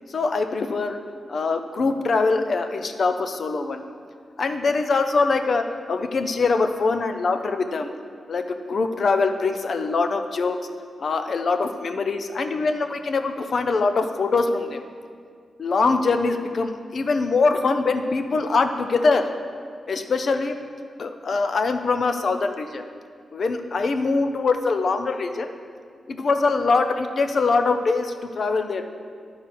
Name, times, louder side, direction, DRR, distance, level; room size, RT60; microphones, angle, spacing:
voice 1, 0.1-1.0 1.3-3.8 4.4-7.9 8.3-10.6 11.0-14.8 15.6-19.3 19.9-20.6 21.0-22.8 23.3-25.5 26.1-28.9, left 4 dB, 55° left, 7 dB, 0.6 m, -23 dB
11.5 x 4.5 x 4.8 m, 2.1 s
cardioid pair, 95°, 0 cm